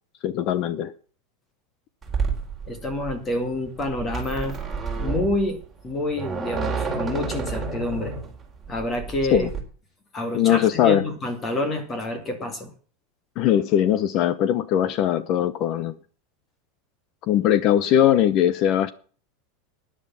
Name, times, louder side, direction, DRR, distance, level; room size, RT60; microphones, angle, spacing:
voice 1, 0.2-0.9 9.3-9.5 10.3-11.0 13.4-16.0 17.3-18.9, left 11 dB, 40° left, 0.8 m, -20 dB
sound 1, 2.0-9.6, right 4 dB, 10° right, 3.9 m, -30 dB
voice 2, 2.7-4.6 5.0-5.6 5.8-8.1 8.7-9.5 10.1-12.7, left 1 dB, 20° left, 2.5 m, -28 dB
13.0 x 10.0 x 5.7 m
supercardioid pair, 150°, 0 cm